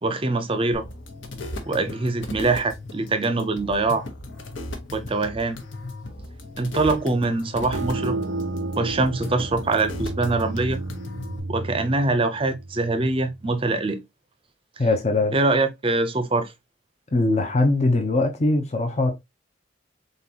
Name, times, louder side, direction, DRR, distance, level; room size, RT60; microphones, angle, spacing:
voice 1, 0.0-0.8 1.7-4.1 4.9-5.6 6.6-8.2 8.8-10.8 11.5-14.0 15.3-16.5, right 3 dB, 25° right, 0.5 m, -23 dB
sound 1, 0.7-11.4, left 1 dB, 65° left, 1.1 m, -37 dB
sound 2, 7.7-13.1, right 2 dB, 85° right, 0.5 m, -32 dB
voice 2, 14.8-15.3 17.1-19.1, left 2 dB, 35° left, 0.6 m, -21 dB
4.0 x 3.9 x 2.8 m
head